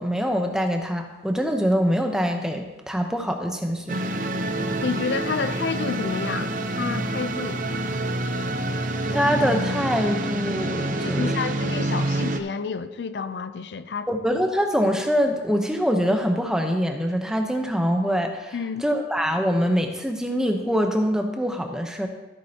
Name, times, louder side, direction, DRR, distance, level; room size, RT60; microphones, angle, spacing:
voice 1, 0.0-4.0 9.1-11.3 14.1-18.5 18.8-22.1, equal, 5° right, 3 dB, 0.8 m, -24 dB
sound 1, 3.9-12.4, right 1 dB, 50° right, 0.6 m, -27 dB
voice 2, 4.8-7.6 11.0-14.1 18.5-18.9, left 5 dB, 80° left, 12 dB, 0.5 m, -30 dB
14.0 x 8.4 x 2.9 m, 1.1 s
head